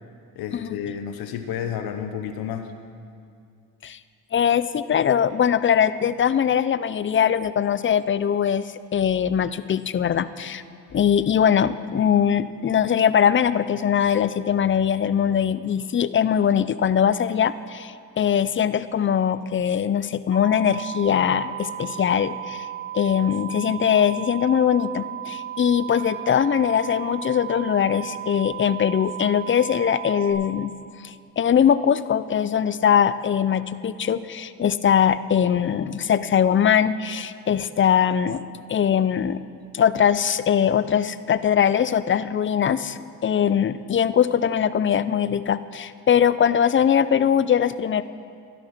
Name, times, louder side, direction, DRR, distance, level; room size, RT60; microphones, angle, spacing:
voice 1, 0.3-2.7, left 8 dB, 85° left, 7 dB, 0.8 m, -31 dB
voice 2, 4.3-10.6 10.9-22.7 22.9-30.7 31.0-38.4 38.7-39.4 39.7-48.0, left 8 dB, 35° left, 15 dB, 0.5 m, -21 dB
sound 1, 20.3-30.3, right 11 dB, 55° right, 3.7 m, -35 dB
13.0 x 11.5 x 5.8 m, 2.4 s
cardioid pair, 85°, 35 cm